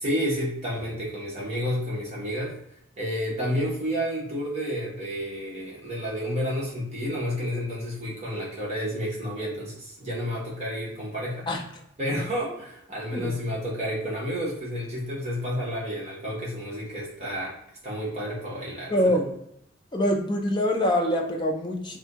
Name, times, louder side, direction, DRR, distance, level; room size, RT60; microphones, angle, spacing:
voice 1, 0.0-2.5 3.0-11.5 12.0-17.6 17.8-18.9, equal, 30° right, -6 dB, 0.9 m, -30 dB
voice 2, 18.9-19.3 19.9-22.0, equal, 20° left, 1 dB, 0.4 m, -24 dB
2.7 x 2.6 x 3.4 m, 0.76 s
head